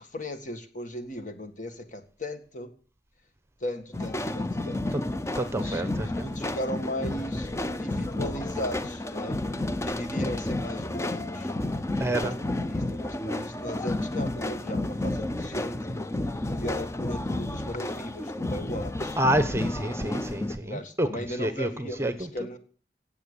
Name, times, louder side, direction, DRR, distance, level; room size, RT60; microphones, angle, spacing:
voice 1, 0.0-2.7 3.6-9.4 9.8-11.5 12.0-12.3 12.7-16.0 16.5-19.2 20.6-22.6, left 1 dB, 45° left, 7 dB, 1.9 m, -37 dB
sound 1, 3.9-20.6, left 1 dB, 15° left, 0.7 m, -31 dB
voice 2, 5.3-6.3 12.0-12.3 19.2-22.3, right 1 dB, 15° right, 11 dB, 0.9 m, -28 dB
16.5 x 8.2 x 7.0 m, 0.41 s
head